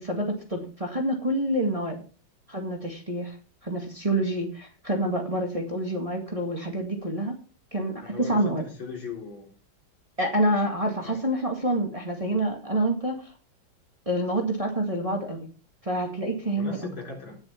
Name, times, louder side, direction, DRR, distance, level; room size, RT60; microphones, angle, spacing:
voice 1, 0.0-2.0 2.5-3.4 3.6-7.4 7.7-8.6 10.2-13.3 14.1-15.5 15.8-16.8, right 1 dB, 15° right, 1 dB, 2.0 m, -27 dB
voice 2, 8.0-9.5 11.0-11.2 16.6-17.4, left 3 dB, 75° left, 0 dB, 4.5 m, -38 dB
18.0 x 6.5 x 4.4 m, 0.36 s
omnidirectional pair, 2.2 m